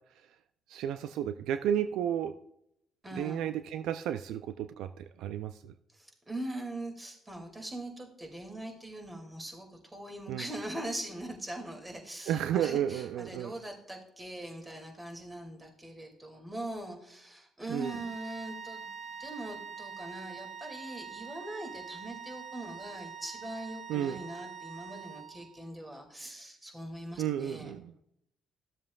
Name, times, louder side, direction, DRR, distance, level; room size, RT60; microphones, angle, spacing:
voice 1, 0.7-2.3 3.1-5.7 10.3-10.5 12.3-13.5 17.7-18.0 23.9-24.2 27.2-27.9, right 10 dB, 80° right, 10 dB, 0.3 m, -32 dB
voice 2, 3.0-3.5 5.9-27.8, right 1 dB, 20° right, 1 dB, 2.4 m, -42 dB
sound 1, 17.8-25.7, right 6 dB, 65° right, 1.0 m, -44 dB
13.5 x 7.3 x 2.4 m, 0.74 s
supercardioid pair, 60°, 0 cm